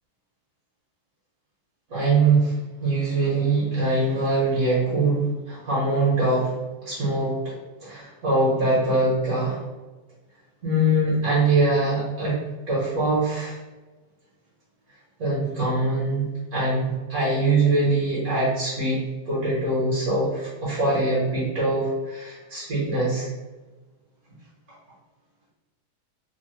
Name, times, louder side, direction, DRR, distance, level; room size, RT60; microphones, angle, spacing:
voice 1, 1.9-6.6 6.8-7.5 7.8-9.6 10.6-12.4 12.7-13.6 15.2-23.3, right 2 dB, 60° right, -8 dB, 1.3 m, -23 dB
3.2 x 2.1 x 3.0 m, 1.2 s
omnidirectional pair, 1.9 m